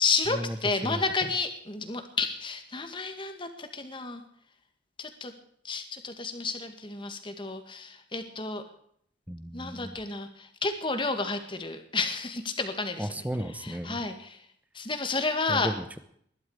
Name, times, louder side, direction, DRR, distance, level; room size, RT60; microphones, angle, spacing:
voice 1, 0.0-4.2 5.0-5.3 5.6-8.6 9.5-13.1 13.6-14.4 14.8-15.7, left 4 dB, 30° left, 7 dB, 2.0 m, -31 dB
voice 2, 9.3-10.0 13.0-14.0 15.5-16.0, equal, 10° right, 11 dB, 0.9 m, -34 dB
20.5 x 12.0 x 5.0 m, 0.65 s
head